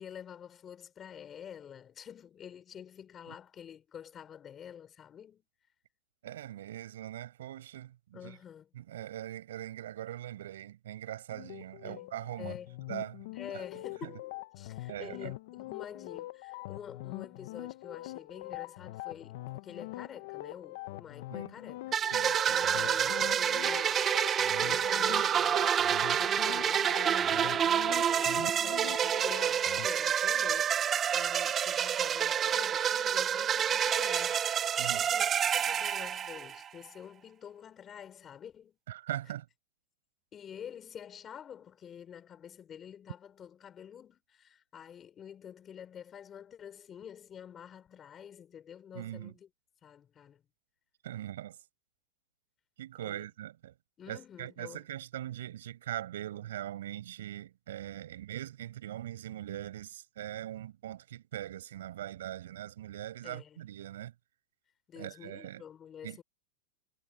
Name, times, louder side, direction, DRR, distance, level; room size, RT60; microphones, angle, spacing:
voice 1, 0.0-5.4 8.1-8.7 11.8-12.1 12.4-12.8 13.3-24.0 24.5-38.8 40.3-49.5 49.8-50.4 53.0-53.3 54.0-54.8 63.2-63.6 64.9-66.2, left 8 dB, 25° left, 4.6 m, -48 dB
voice 2, 6.2-8.4 8.8-12.5 12.9-13.3 13.5-13.6 14.0-14.1 14.9-15.3 21.3-21.5 22.1-22.6 34.8-35.1 38.9-39.5 48.9-49.3 51.0-51.6 52.8-53.7 54.1-64.1 65.0-65.6 66.0-66.2, right 12 dB, 80° right, 5.5 m, -41 dB
sound 1, 11.3-29.9, left 18 dB, 60° left, 1.0 m, -43 dB
sound 2, 21.9-36.7, right 8 dB, 25° right, 0.7 m, -28 dB
hypercardioid pair, 130°, 0 cm